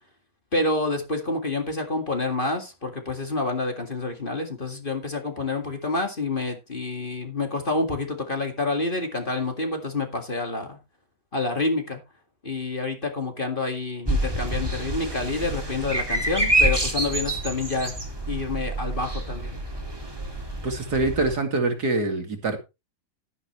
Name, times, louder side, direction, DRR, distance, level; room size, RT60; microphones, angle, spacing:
voice 1, 0.5-10.8 11.3-12.0 12.4-17.9 18.3-19.6, left 3 dB, 30° left, 2.0 m, -28 dB
sound 1, 14.0-21.3, right 1 dB, 15° right, 2.1 m, -27 dB
voice 2, 20.6-22.6, right 3 dB, 60° right, 2.7 m, -25 dB
12.0 x 10.0 x 3.1 m
omnidirectional pair, 2.0 m